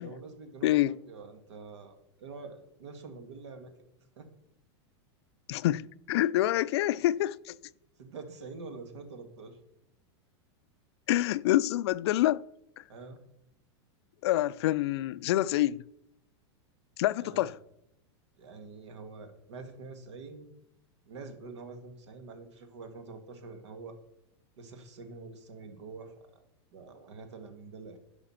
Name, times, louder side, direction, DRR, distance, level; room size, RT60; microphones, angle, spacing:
voice 1, 0.0-3.9 4.2-4.3 8.0-9.6 12.9-13.2 17.2-17.5 18.4-20.5 21.1-24.0 24.6-26.1 26.7-28.0, right 4 dB, 85° right, 1.9 m, -46 dB
voice 2, 0.6-1.0 5.5-7.5 11.1-12.5 14.2-15.8 17.0-17.6, left 15 dB, 70° left, 0.4 m, -27 dB
11.0 x 5.7 x 5.8 m
supercardioid pair, 145°, 14 cm